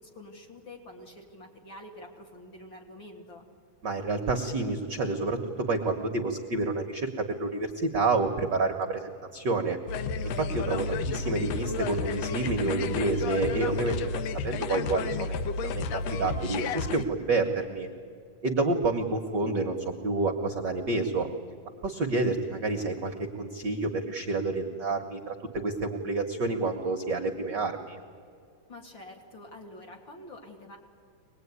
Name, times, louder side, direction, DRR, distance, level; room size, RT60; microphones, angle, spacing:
voice 1, 0.0-3.4 28.7-30.8, left 1 dB, 40° left, 0 dB, 3.2 m, -47 dB
voice 2, 3.8-9.8 10.2-15.3 15.6-17.9 18.4-21.3 21.8-28.0, right 3 dB, 55° right, 4 dB, 1.3 m, -29 dB
sound 1, 9.9-17.0, left 4 dB, 70° left, 1.8 m, -31 dB
24.5 x 20.0 x 9.5 m, 2.4 s
omnidirectional pair, 3.5 m